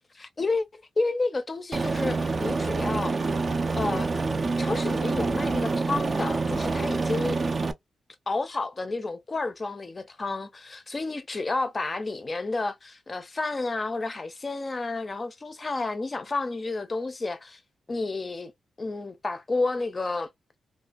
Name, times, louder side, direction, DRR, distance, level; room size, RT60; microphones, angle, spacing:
voice 1, 0.2-3.2 3.7-4.1 4.6-7.4 8.3-17.6 17.9-18.5 18.8-20.3, left 3 dB, 30° left, 0.5 m, -30 dB
Aircraft, 1.7-7.7, right 3 dB, 35° right, 0.3 m, -27 dB
2.5 x 2.3 x 2.2 m
wide cardioid pair, 120°, 0 cm